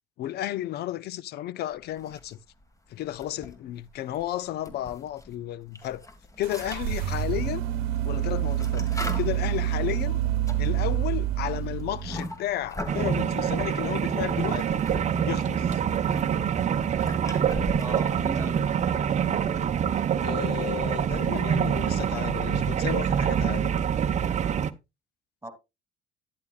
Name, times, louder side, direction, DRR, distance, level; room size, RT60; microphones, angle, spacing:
voice 1, 0.2-2.4 2.9-6.1 6.4-7.6 8.0-8.9 9.2-10.2 10.6-14.8 15.2-15.7 20.2-23.9, left 13 dB, 60° left, 0.6 m, -33 dB
sound 1, 1.9-2.6 3.0-5.3 5.7-13.1 13.8-15.1 15.3-18.7, left 1 dB, 15° left, 1.9 m, -40 dB
sound 2, 6.4-12.3, right 12 dB, 90° right, 1.0 m, -27 dB
sound 3, 12.9-24.7, right 8 dB, 40° right, 0.7 m, -26 dB
voice 2, 17.8-19.1 25.4-25.5, right 2 dB, 15° right, 2.7 m, -38 dB
11.5 x 8.6 x 2.4 m
supercardioid pair, 75°, 18 cm